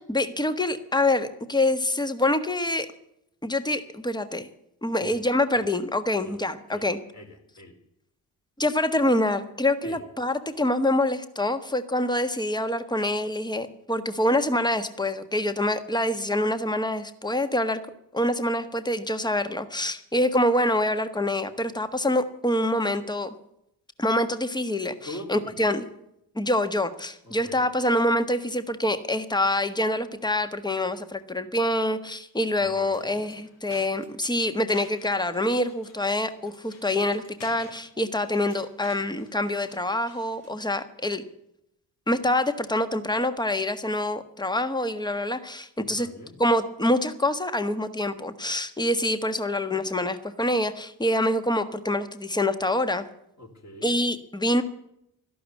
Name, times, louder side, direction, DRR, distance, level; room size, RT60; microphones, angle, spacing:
voice 1, 0.1-2.9 3.4-4.5 4.8-7.0 8.6-17.8 18.1-23.3 24.0-25.9 26.3-41.2 42.1-46.1 46.4-53.1 53.8-54.6, left 1 dB, 10° left, 10 dB, 1.5 m, -26 dB
voice 2, 7.1-7.7 9.8-10.0 25.0-25.7 27.2-27.6 32.6-33.2 45.8-46.4 53.4-53.9, left 1 dB, 30° left, 2 dB, 4.3 m, -43 dB
sound 1, 32.5-40.6, left 4 dB, 60° left, 2.9 m, -52 dB
13.0 x 11.5 x 8.4 m, 0.78 s
figure-of-eight pair, 45°, 49 cm